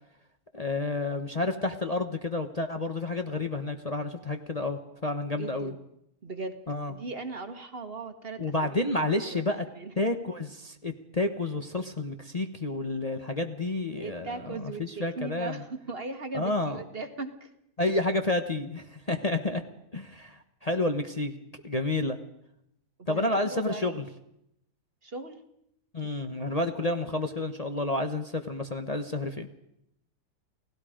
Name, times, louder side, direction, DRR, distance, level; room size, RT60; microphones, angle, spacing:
voice 1, 0.5-5.7 6.7-6.9 8.4-9.6 10.0-14.3 14.8-15.6 16.3-16.8 17.8-19.6 19.9-22.2 23.1-24.0 25.9-29.5, left 2 dB, 25° left, 5 dB, 1.1 m, -30 dB
voice 2, 5.4-5.8 6.2-6.6 6.9-8.8 9.2-9.4 9.7-9.9 13.9-17.5 19.1-19.2 23.0-23.9 25.0-25.4, right 3 dB, 40° right, 8 dB, 1.6 m, -38 dB
29.5 x 18.5 x 5.1 m, 0.78 s
omnidirectional pair, 1.6 m